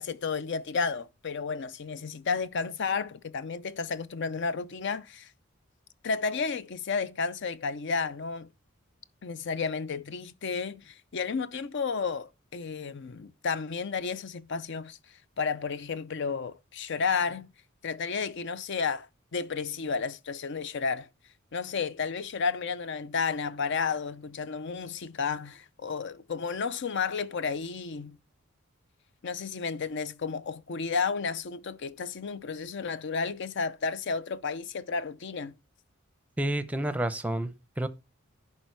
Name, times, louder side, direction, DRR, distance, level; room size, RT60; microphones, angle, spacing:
voice 1, 0.0-5.3 6.0-8.5 9.2-15.0 15.4-17.5 17.8-21.1 21.5-28.2 29.2-35.5, left 5 dB, 60° left, 0.5 m, -32 dB
voice 2, 36.4-37.9, right 1 dB, 5° right, 0.6 m, -30 dB
11.0 x 4.4 x 4.6 m
head